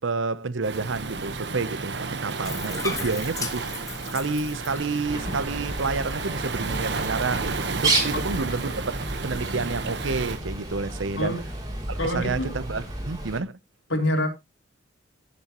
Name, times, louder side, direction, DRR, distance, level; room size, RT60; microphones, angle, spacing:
voice 1, 0.0-3.6 4.0-8.7 9.0-11.4 11.9-13.6, right 4 dB, 80° right, 0.8 m, -29 dB
Waves surf, 0.6-10.4, right 4 dB, 60° right, 1.2 m, -32 dB
Bathtub (filling or washing), 2.4-10.8, left 3 dB, 20° left, 1.5 m, -39 dB
Bird, 5.1-13.4, right 2 dB, 20° right, 3.0 m, -32 dB
voice 2, 12.0-12.5 13.9-14.3, left 1 dB, 85° left, 3.5 m, -26 dB
16.0 x 7.0 x 3.0 m
head